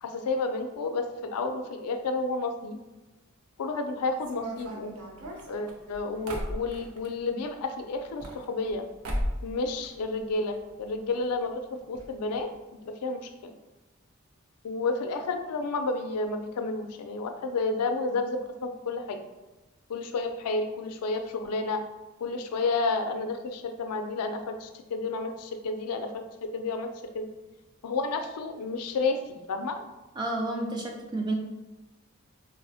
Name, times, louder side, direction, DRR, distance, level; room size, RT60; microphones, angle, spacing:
voice 1, 0.0-2.8 3.6-4.9 5.5-8.8 9.4-12.5 12.8-13.5 14.6-19.2 19.9-21.8 22.2-26.2 26.5-26.9 27.1-27.3 27.8-29.8, left 3 dB, 90° left, 6 dB, 0.4 m, -31 dB
sound 1, 4.2-7.1 8.0-8.8 9.0-9.5 9.8-10.6 10.9-11.0 11.2-11.3 11.9-12.1 12.3-12.5, equal, 75° right, 0.5 m, -35 dB
voice 2, 30.2-31.3, right 2 dB, 20° right, 1 dB, 0.3 m, -30 dB
4.0 x 2.0 x 2.7 m, 1.1 s
head